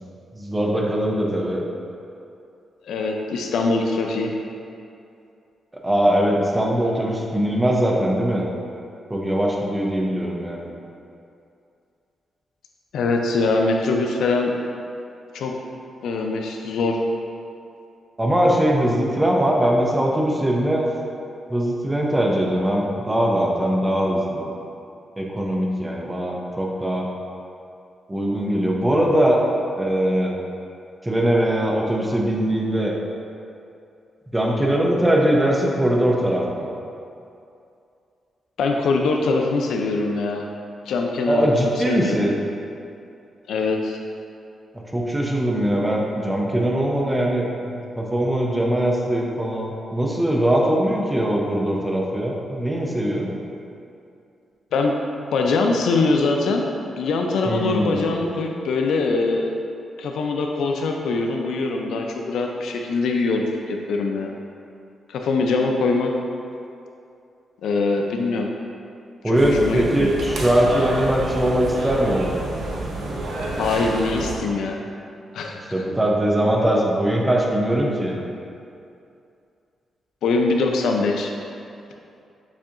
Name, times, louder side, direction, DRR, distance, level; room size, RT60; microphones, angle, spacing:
voice 1, 0.3-1.6 5.8-8.5 9.1-10.7 18.2-20.9 21.5-24.5 25.2-27.1 28.1-29.4 29.8-30.3 31.0-32.9 34.3-36.7 41.3-42.3 44.9-53.3 57.5-58.2 69.2-72.3 75.5-78.2, right 1 dB, 10° right, -1 dB, 0.5 m, -21 dB
voice 2, 2.8-4.3 12.9-14.5 15.3-15.5 16.0-17.0 38.6-40.5 40.9-41.5 41.9-42.2 43.5-44.0 54.7-54.9 55.3-56.7 57.0-59.5 60.0-64.3 65.1-66.1 67.6-68.5 69.2-70.1 73.6-74.8 75.3-75.6 80.2-81.3, left 3 dB, 90° left, 2 dB, 0.4 m, -22 dB
sound 1, 69.3-74.4, right 2 dB, 80° right, 0.6 m, -29 dB
7.0 x 2.7 x 2.5 m, 2.5 s
wide cardioid pair, 135°, 0 cm